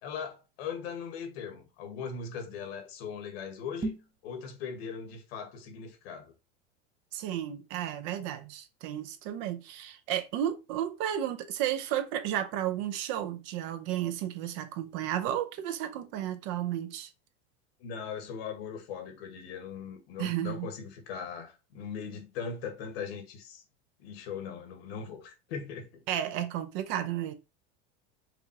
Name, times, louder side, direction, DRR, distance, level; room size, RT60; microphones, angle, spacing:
voice 1, 0.0-3.9 4.2-6.3 17.8-23.6 24.0-26.0, left 6 dB, 75° left, 1.4 m, -39 dB
sound 1, 3.7-4.2, right 2 dB, 15° right, 0.6 m, -35 dB
voice 2, 7.1-17.1 20.2-20.7 26.1-27.3, right 11 dB, 60° right, 0.6 m, -33 dB
4.9 x 2.4 x 2.7 m
supercardioid pair, 115°, 31 cm